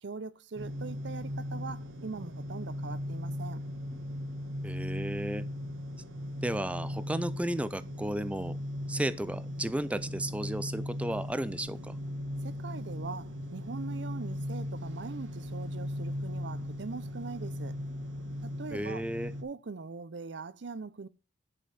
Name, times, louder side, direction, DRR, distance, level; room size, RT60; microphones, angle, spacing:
voice 1, 0.0-3.6 12.4-17.8 18.4-19.0 19.4-21.1, right 4 dB, 65° right, 0.6 m, -41 dB
sound 1, 0.6-19.4, left 1 dB, 85° right, 1.7 m, -38 dB
voice 2, 4.6-5.4 6.4-8.6 8.9-12.0 18.7-19.3, right 1 dB, 5° right, 0.4 m, -34 dB
11.0 x 5.3 x 4.2 m
head